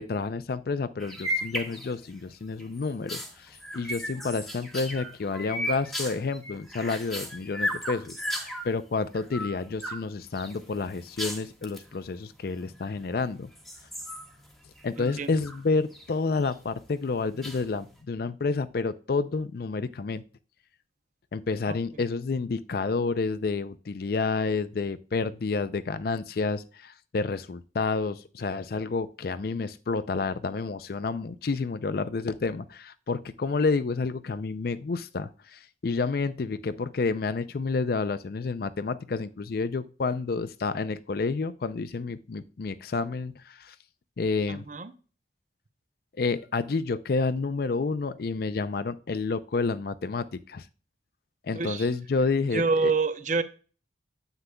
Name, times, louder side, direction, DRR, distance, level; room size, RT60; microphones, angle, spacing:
voice 1, 0.0-13.5 14.8-20.2 21.3-43.8 44.2-44.6 46.2-50.6 51.4-52.9, left 4 dB, 55° left, 13 dB, 0.4 m, -29 dB
sound 1, 1.0-2.2 2.6-8.7 9.1-10.0 10.3-11.9 12.7-13.2 13.6-15.6 15.9-16.5 17.4-18.0, equal, ahead, 1.5 m, -35 dB
voice 2, 15.0-15.3 21.7-21.8 44.5-44.9 51.5-51.9 52.5-53.4, right 4 dB, 45° right, 10 dB, 0.7 m, -27 dB
9.7 x 8.1 x 2.2 m, 0.36 s
head